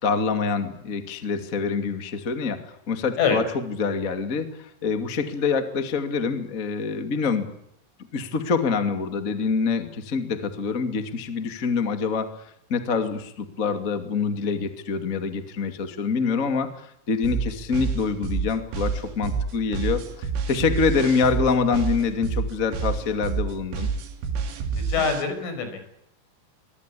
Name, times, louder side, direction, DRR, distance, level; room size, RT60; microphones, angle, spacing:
voice 1, 0.0-7.5 8.1-12.3 12.7-23.9, left 5 dB, 30° left, 8 dB, 1.5 m, -26 dB
sound 1, 17.2-25.2, right 5 dB, 85° right, 5.5 m, -28 dB
voice 2, 24.9-26.0, left 6 dB, 75° left, 8 dB, 7.9 m, -25 dB
24.0 x 23.0 x 8.5 m, 0.76 s
omnidirectional pair, 5.6 m